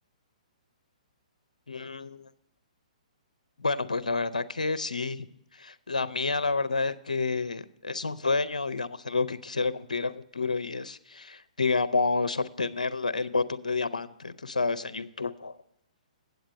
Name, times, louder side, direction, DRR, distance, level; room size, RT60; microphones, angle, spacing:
voice 1, 1.7-2.3 3.6-5.3 5.5-15.6, left 3 dB, 80° left, 13 dB, 0.5 m, -29 dB
8.8 x 7.9 x 4.9 m, 0.83 s
figure-of-eight pair, 120°, 4 cm